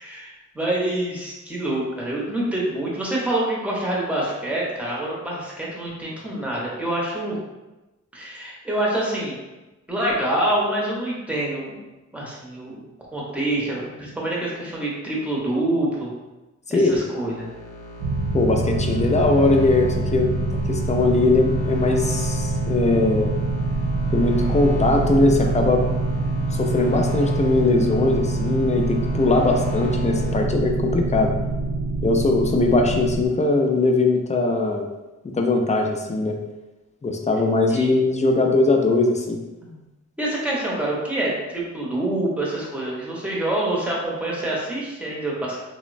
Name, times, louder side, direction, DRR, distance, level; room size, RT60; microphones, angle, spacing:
voice 1, 0.0-7.4 8.1-9.4 9.9-11.8 12.1-12.8 13.1-16.1 16.7-17.5 37.7-38.0 39.6-39.9 40.2-45.6, right 1 dB, 5° right, -5 dB, 0.7 m, -26 dB
voice 2, 16.7-17.0 18.3-20.3 20.7-23.4 24.1-25.8 26.6-31.3 32.0-34.9 35.4-36.4 37.0-39.4, left 3 dB, 25° left, 2 dB, 0.3 m, -20 dB
sound 1, 17.0-30.4, equal, 70° left, 0.5 m, -36 dB
sound 2, 18.0-33.3, right 3 dB, 80° right, 0.5 m, -25 dB
3.0 x 2.0 x 2.4 m, 1.1 s
wide cardioid pair, 80°, 31 cm